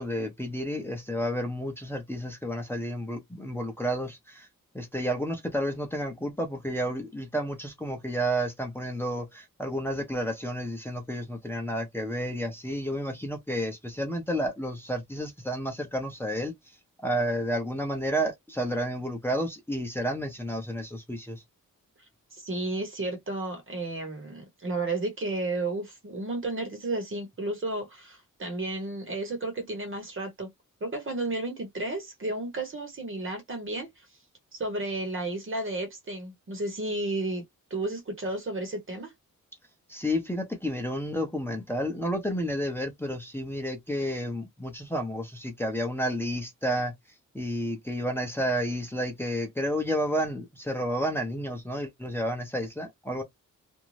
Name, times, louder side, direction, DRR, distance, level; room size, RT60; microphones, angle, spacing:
voice 1, 0.0-4.5 4.7-16.5 17.0-21.4 39.9-46.9 47.3-53.2, equal, 5° left, 0.7 m, -31 dB
voice 2, 22.3-30.5 30.8-33.9 34.5-37.4 37.7-39.1, right 2 dB, 40° right, 1.0 m, -32 dB
2.6 x 2.2 x 3.1 m
wide cardioid pair, 125°, 33 cm